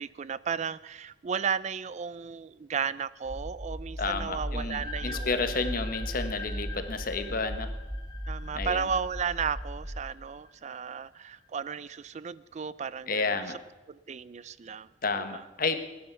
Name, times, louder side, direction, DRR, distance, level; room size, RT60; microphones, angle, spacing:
voice 1, 0.0-5.5 8.3-13.2 13.9-14.9 15.1-15.4, right 6 dB, 40° right, 18 dB, 0.4 m, -34 dB
sound 1, 3.2-10.0, equal, ahead, 1.3 m, -37 dB
voice 2, 4.0-7.7 8.5-8.9 13.1-13.6 15.0-15.9, left 4 dB, 50° left, 8 dB, 1.4 m, -31 dB
sound 2, 4.8-11.0, left 3 dB, 20° left, 1.9 m, -45 dB
16.5 x 10.0 x 7.0 m, 1.1 s
head